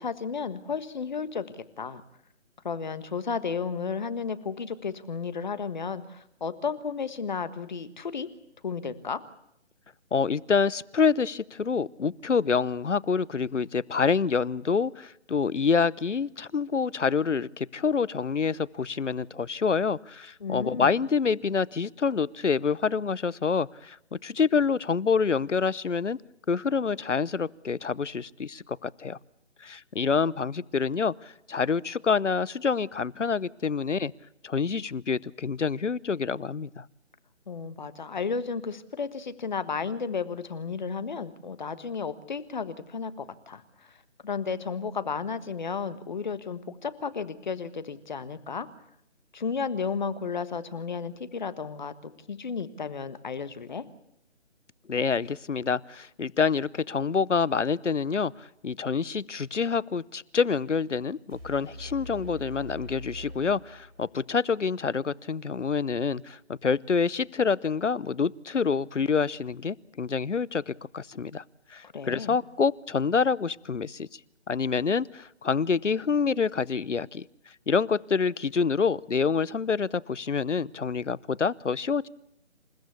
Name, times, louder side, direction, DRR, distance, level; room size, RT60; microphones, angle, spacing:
voice 1, 0.0-2.0 2.6-8.3 8.6-9.2 20.4-20.9 37.5-44.0 44.2-48.7 49.3-53.8 71.9-72.4, left 5 dB, 40° left, 13 dB, 1.5 m, -33 dB
voice 2, 10.1-26.2 26.5-29.2 29.6-34.1 34.4-36.8 54.9-71.4 71.7-74.2 74.5-77.2 77.7-82.1, left 5 dB, 80° left, 22 dB, 0.8 m, -27 dB
sound 1, 61.3-64.3, left 1 dB, 55° right, 7.7 m, -43 dB
28.0 x 15.5 x 8.4 m, 0.76 s
figure-of-eight pair, 155°, 36 cm